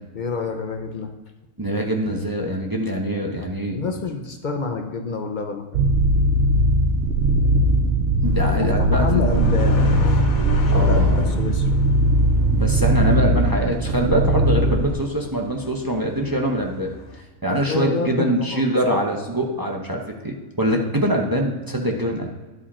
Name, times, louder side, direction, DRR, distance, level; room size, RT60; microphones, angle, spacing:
voice 1, 0.1-1.1 3.7-5.9 8.6-10.2 10.7-11.7 17.5-18.6, left 4 dB, 45° left, 5 dB, 0.7 m, -28 dB
voice 2, 1.6-3.8 8.2-9.2 10.7-11.3 12.5-16.9 17.4-22.3, right 1 dB, 20° right, 0 dB, 0.7 m, -23 dB
sound 1, 5.7-14.9, right 1 dB, 60° right, 1.0 m, -19 dB
sound 2, 8.2-17.2, left 4 dB, 75° left, 1.4 m, -36 dB
11.0 x 5.0 x 4.3 m, 1.3 s
omnidirectional pair, 1.5 m